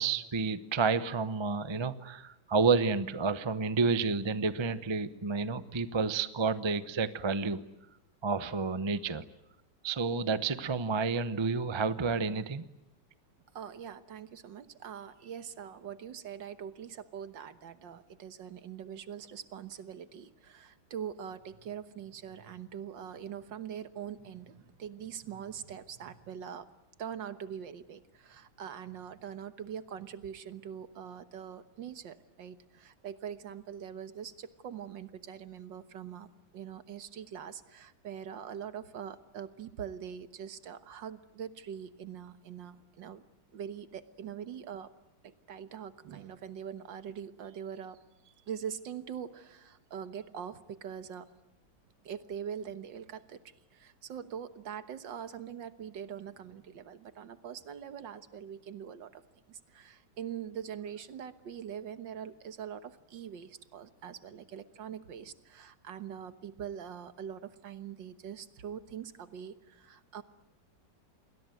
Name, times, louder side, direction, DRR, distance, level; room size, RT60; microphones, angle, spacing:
voice 1, 0.0-7.6 8.2-9.2 9.8-12.6, right 4 dB, 25° right, 13 dB, 0.6 m, -30 dB
voice 2, 13.5-26.7 27.0-43.2 43.5-44.9 45.2-51.3 52.0-59.2 59.5-70.2, right 8 dB, 70° right, 12 dB, 1.9 m, -43 dB
28.5 x 21.5 x 9.2 m, 0.91 s
omnidirectional pair, 2.1 m